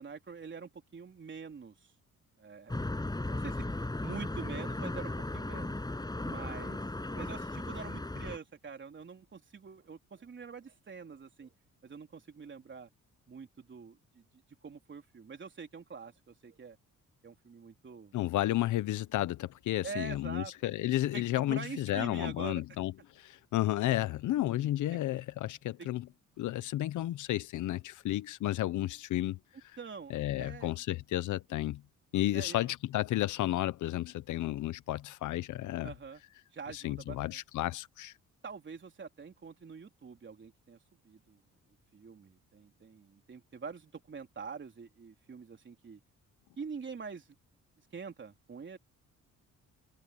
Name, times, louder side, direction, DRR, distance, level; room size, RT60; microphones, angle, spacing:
voice 1, 0.0-1.9 2.4-3.0 3.2-3.7 4.0-5.8 6.2-6.8 7.1-11.5 11.8-12.9 13.3-14.2 14.6-16.8 17.2-18.1 19.8-20.6 21.1-22.6 24.9-25.0 25.8-25.9 29.8-30.7 32.3-32.7 35.8-36.2 36.5-37.4 38.4-41.4 41.9-46.0 46.6-47.4 47.9-48.8, right 5 dB, 40° right, 3.9 m, -45 dB
sound 1, 2.7-8.4, left 2 dB, 15° left, 7.0 m, -36 dB
voice 2, 18.1-26.1 26.4-29.4 30.1-31.8 32.1-35.9 36.7-38.1, left 14 dB, 80° left, 1.0 m, -32 dB
cardioid pair, 90°, 30 cm